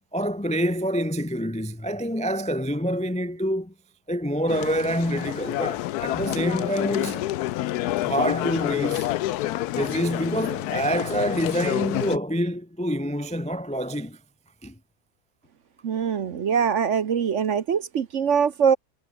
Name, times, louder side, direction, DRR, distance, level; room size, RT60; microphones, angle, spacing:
voice 1, 0.1-3.7 4.1-7.3 8.0-9.1 9.7-14.2 14.6-14.7, equal, 10° left, 0.4 m, -26 dB
sound 1, 4.5-12.2, left 15 dB, 70° left, 1.0 m, -28 dB
voice 2, 15.8-18.8, right 7 dB, 50° right, 1.1 m, -23 dB
omnidirectional pair, 1.8 m